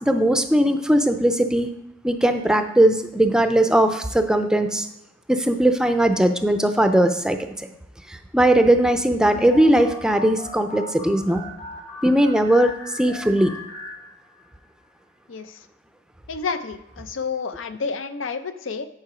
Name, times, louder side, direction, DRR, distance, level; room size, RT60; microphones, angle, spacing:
voice 1, 0.0-1.7 2.0-4.9 5.3-7.4 8.3-11.4 12.0-13.5, right 1 dB, 5° right, 7 dB, 0.4 m, -19 dB
sound 1, 9.5-14.6, left 1 dB, 50° left, 1.5 m, -38 dB
voice 2, 15.3-15.7 16.3-18.9, left 5 dB, 90° left, 10 dB, 0.6 m, -30 dB
9.6 x 4.6 x 4.9 m, 0.89 s
head